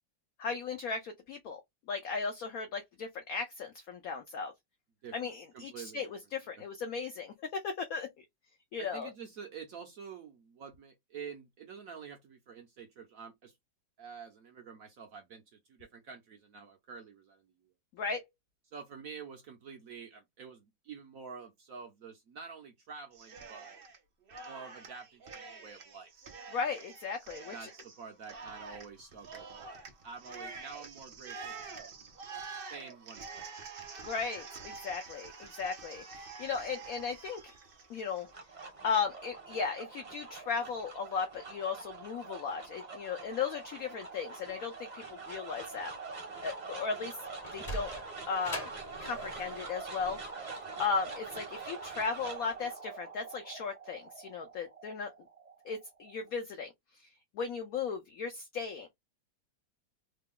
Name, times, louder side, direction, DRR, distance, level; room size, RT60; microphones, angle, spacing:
voice 1, 0.4-1.6 1.9-4.5 5.1-8.1 8.7-9.1 18.0-18.2 26.5-27.7 34.0-37.4 37.9-38.3 38.8-45.9 46.4-47.1 47.5-47.9 48.3-48.7 49.0-50.2 50.8-55.1 55.6-56.7 57.3-58.9, left 5 dB, 70° left, 0.8 m, -36 dB
voice 2, 5.0-6.1 8.8-13.5 14.0-17.4 18.7-23.8 24.5-26.1 27.5-29.7 30.0-32.1 32.7-33.5, right 6 dB, 65° right, 0.9 m, -48 dB
Cheering, 23.1-24.0 24.3-38.7, right 4 dB, 85° right, 0.4 m, -47 dB
sound 1, 38.0-56.3, right 4 dB, 35° right, 0.7 m, -45 dB
Sliding door, 47.1-52.3, equal, 35° left, 0.7 m, -44 dB
3.3 x 2.2 x 3.5 m
omnidirectional pair, 2.1 m